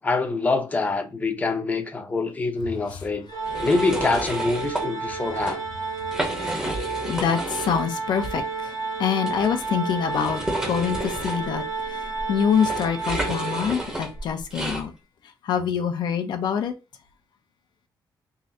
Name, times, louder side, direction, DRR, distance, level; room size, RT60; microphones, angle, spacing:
voice 1, 0.0-3.2 3.6-5.6, left 3 dB, 20° left, 0.7 m, -25 dB
Organ, 3.3-14.2, right 4 dB, 50° right, 1.0 m, -31 dB
sound 1, 3.4-4.8 5.3-5.5 6.0-7.9 8.2-8.3 9.2-14.8, right 1 dB, 10° right, 0.9 m, -31 dB
voice 2, 6.0-14.9 15.4-16.7, left 7 dB, 75° left, 0.8 m, -26 dB
3.8 x 3.2 x 2.8 m
wide cardioid pair, 175°, 8 cm